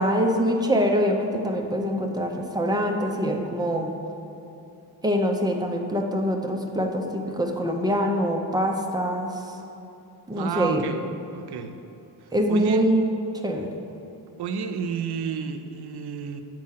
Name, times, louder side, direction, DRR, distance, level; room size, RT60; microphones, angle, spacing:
voice 1, 0.0-3.9 5.0-9.6 10.3-10.8 12.3-13.0 13.4-13.7, equal, 10° right, 2 dB, 0.4 m, -24 dB
voice 2, 10.3-11.0 11.3-11.8 12.2-12.9 14.4-16.4, right 6 dB, 75° right, 8 dB, 0.6 m, -31 dB
7.5 x 4.6 x 5.6 m, 2.9 s
wide cardioid pair, 180°, 39 cm